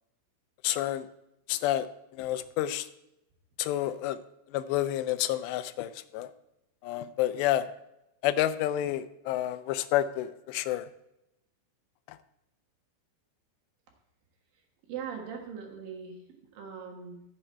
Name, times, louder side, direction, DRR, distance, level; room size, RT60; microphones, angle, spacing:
voice 1, 0.6-1.1 1.5-1.9 2.1-2.9 3.6-4.2 4.5-6.3 6.8-7.7 8.2-10.9 12.1-12.2, left 13 dB, 85° left, 13 dB, 2.8 m, -29 dB
voice 2, 14.9-16.2 16.5-17.2, right 7 dB, 65° right, 1 dB, 2.9 m, -40 dB
14.5 x 7.6 x 4.4 m, 0.88 s
omnidirectional pair, 4.9 m